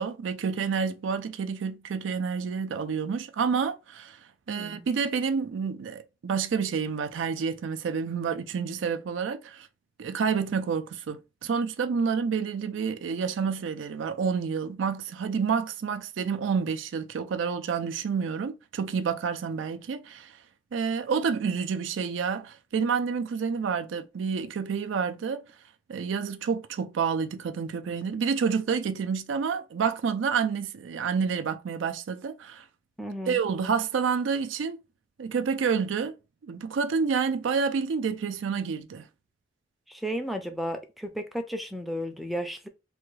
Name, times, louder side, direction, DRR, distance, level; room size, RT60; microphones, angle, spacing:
voice 1, 0.0-4.2 4.5-9.7 10.0-20.3 20.7-25.4 25.9-32.7 33.3-34.8 35.2-36.2 36.4-39.1, right 6 dB, 75° right, 0.4 m, -29 dB
voice 2, 4.5-4.8 33.0-33.4 39.9-42.7, equal, ahead, 0.4 m, -33 dB
3.4 x 2.3 x 3.1 m
head